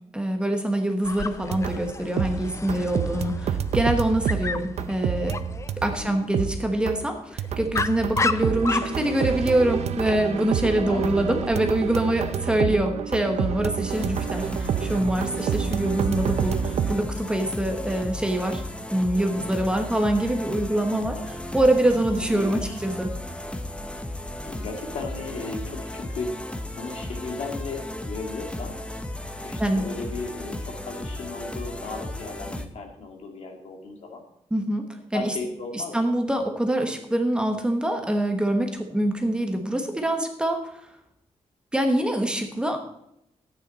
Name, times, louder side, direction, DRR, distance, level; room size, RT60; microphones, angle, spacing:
voice 1, 0.1-5.4 5.8-18.6 18.9-23.1 29.6-29.9 34.5-35.4 35.7-40.6 41.7-42.8, right 1 dB, 10° right, 4 dB, 1.2 m, -25 dB
Dog, 1.0-11.6, left 4 dB, 25° left, 0.4 m, -34 dB
sound 1, 1.4-1.9 2.2-6.1 6.3-7.0 7.4-16.9, right 8 dB, 70° right, 0.6 m, -28 dB
voice 2, 5.9-6.4 10.8-11.4 22.3-22.8 24.4-26.3 26.8-28.7 29.4-34.2 35.1-36.1, left 4 dB, 75° left, 2 dB, 2.3 m, -36 dB
sound 2, 13.9-32.7, left 1 dB, 10° left, 0.8 m, -35 dB
13.5 x 9.0 x 4.1 m, 0.77 s
wide cardioid pair, 160°, 11 cm